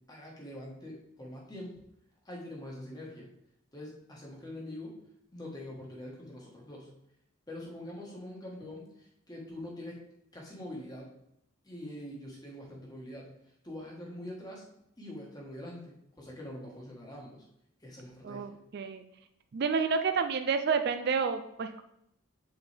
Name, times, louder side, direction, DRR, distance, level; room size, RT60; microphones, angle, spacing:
voice 1, 0.1-1.8 2.2-3.3 3.7-5.0 5.3-6.9 7.5-10.0 10.3-11.1 11.6-13.3 13.6-14.7 15.0-17.5 17.8-18.6, left 1 dB, 20° left, -2 dB, 1.3 m, -44 dB
voice 2, 18.2-19.0 19.5-21.8, right 5 dB, 50° right, 8 dB, 0.3 m, -30 dB
6.8 x 4.3 x 3.4 m, 0.78 s
head